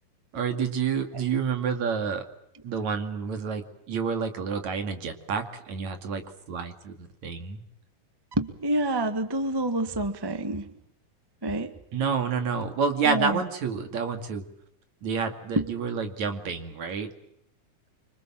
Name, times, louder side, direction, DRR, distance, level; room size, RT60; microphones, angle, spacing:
voice 1, 0.3-2.3 2.6-6.2 6.5-7.6 11.9-14.5 15.0-17.1, right 6 dB, 65° right, 6 dB, 3.6 m, -29 dB
voice 2, 8.4-10.7 11.4-11.7 13.1-13.3 15.6-15.7, right 1 dB, 20° right, 9 dB, 0.5 m, -27 dB
26.0 x 25.5 x 7.5 m, 0.76 s
omnidirectional pair, 3.6 m